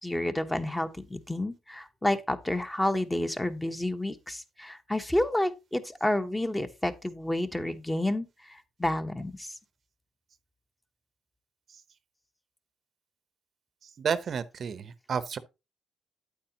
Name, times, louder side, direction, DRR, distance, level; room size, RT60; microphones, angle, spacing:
voice 1, 0.0-9.5, left 1 dB, 10° left, 1.1 m, -30 dB
voice 2, 14.0-15.4, right 6 dB, 55° right, 0.8 m, -31 dB
8.8 x 8.7 x 2.9 m
cardioid pair, 90°, 0 cm